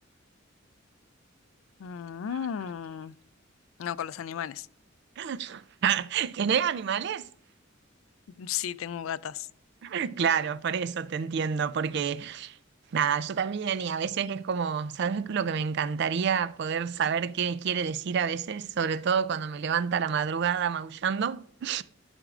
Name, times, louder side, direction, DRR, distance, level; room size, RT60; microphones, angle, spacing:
voice 1, 1.8-3.1 3.8-4.7 8.4-9.5, left 9 dB, 85° left, 0.3 m, -34 dB
voice 2, 5.2-7.3 9.8-12.6 12.9-21.8, right 7 dB, 55° right, 0.4 m, -28 dB
12.0 x 6.0 x 2.5 m
head